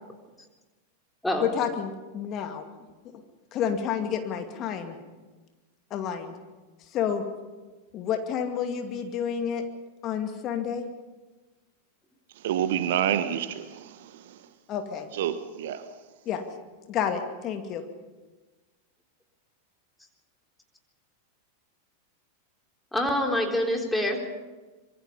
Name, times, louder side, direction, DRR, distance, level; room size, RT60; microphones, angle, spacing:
voice 1, 1.4-2.7 3.5-5.0 5.9-6.3 6.9-7.2 7.9-9.6 10.0-10.8 14.7-15.1 16.3-16.4 16.9-17.8, left 8 dB, 35° left, 2.3 m, -29 dB
voice 2, 12.4-14.1 15.1-15.8, right 10 dB, 55° right, 1.3 m, -28 dB
voice 3, 22.9-24.3, left 1 dB, 5° left, 3.8 m, -26 dB
25.5 x 23.0 x 5.6 m
figure-of-eight pair, 90°, 0 cm